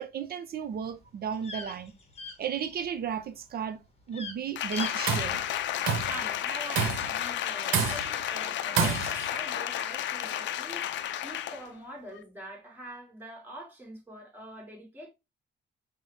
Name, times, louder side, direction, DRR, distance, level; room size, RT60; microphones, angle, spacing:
voice 1, 0.0-1.9 2.4-3.8 4.1-5.4, right 7 dB, 50° right, 0.5 m, -34 dB
sound 1, 0.6-3.1 3.3-3.7 4.0-4.4 4.7-4.9 5.2-5.3, left 4 dB, 30° left, 0.9 m, -41 dB
Applause, 4.6-11.7 12.1-12.2, left 11 dB, 70° left, 0.4 m, -32 dB
Tools, 4.8-5.4 5.9-6.2 6.8-7.2 7.7-8.2 8.8-9.3, right 6 dB, 85° right, 0.7 m, -28 dB
voice 2, 6.0-15.1, right 1 dB, 10° right, 1.5 m, -44 dB
5.3 x 2.0 x 3.0 m
cardioid pair, 90°, 20 cm